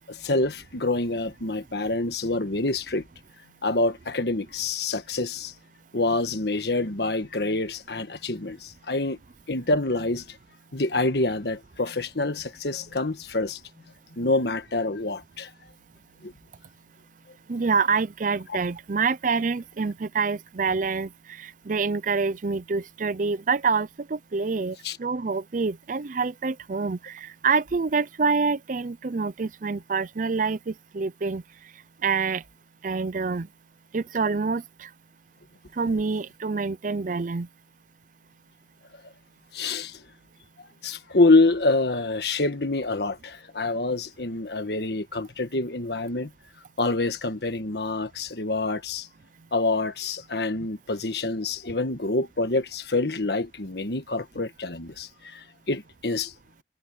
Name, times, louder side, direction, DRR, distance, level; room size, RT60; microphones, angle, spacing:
voice 1, 0.1-3.0 3.6-5.5 5.9-9.2 9.5-10.4 10.7-13.6 14.2-15.5 16.2-16.3 24.8-25.0 39.5-40.0 40.8-46.3 46.8-49.1 49.5-56.3, left 2 dB, 65° left, 1.5 m, -26 dB
voice 2, 17.5-31.4 32.0-32.4 32.8-33.5 33.9-34.9 35.8-37.5, right 4 dB, 45° right, 0.5 m, -26 dB
head